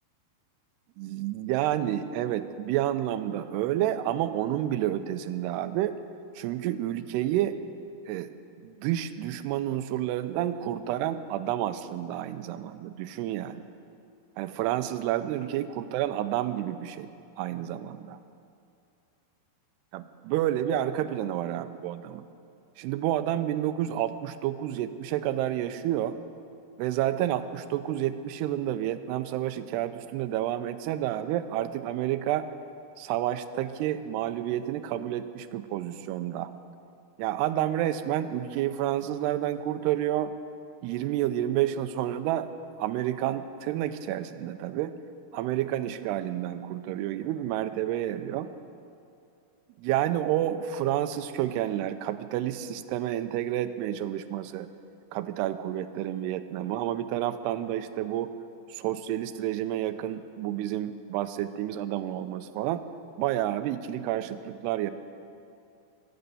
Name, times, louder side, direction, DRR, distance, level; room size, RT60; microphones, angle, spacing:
voice 1, 1.0-6.0 6.4-7.6 8.1-8.3 8.6-13.6 14.4-17.1 17.4-18.2 19.9-22.3 22.8-26.2 26.8-32.5 33.0-36.5 37.2-40.3 40.8-42.5 42.8-44.9 45.3-48.5 49.8-54.7 55.1-58.3 58.7-62.8 63.2-64.9, right 12 dB, 85° right, 11 dB, 2.6 m, -29 dB
21.0 x 7.8 x 8.3 m, 2.5 s
omnidirectional pair, 4.9 m